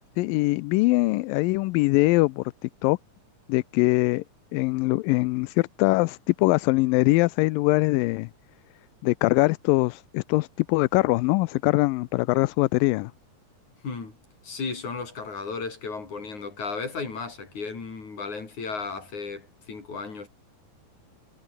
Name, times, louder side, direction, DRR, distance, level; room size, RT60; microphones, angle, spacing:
voice 1, 0.2-2.4 2.8-3.0 3.5-4.2 4.5-8.3 9.0-13.1, left 22 dB, 85° left, 2.3 m, -22 dB
voice 2, 13.8-14.2 14.4-20.3, left 4 dB, 55° left, 6.8 m, -34 dB
omnidirectional pair, 4.0 m